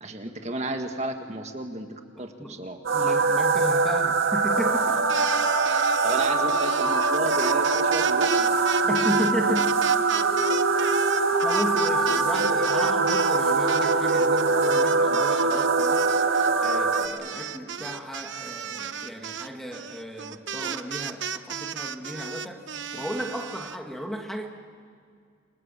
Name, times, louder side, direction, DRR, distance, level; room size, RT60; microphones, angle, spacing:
voice 1, 0.0-3.2 6.0-8.7, right 2 dB, 35° right, 5 dB, 1.8 m, -33 dB
voice 2, 2.2-5.0 8.9-9.8 10.8-11.0 11.4-16.1 16.6-22.7 22.9-24.5, equal, ahead, 3 dB, 1.7 m, -34 dB
sound 1, 2.8-17.1, right 3 dB, 85° right, 1.7 m, -23 dB
sound 2, 5.0-13.4 13.7-23.8, right 7 dB, 65° right, 0.9 m, -35 dB
29.0 x 23.5 x 7.5 m, 2.2 s
head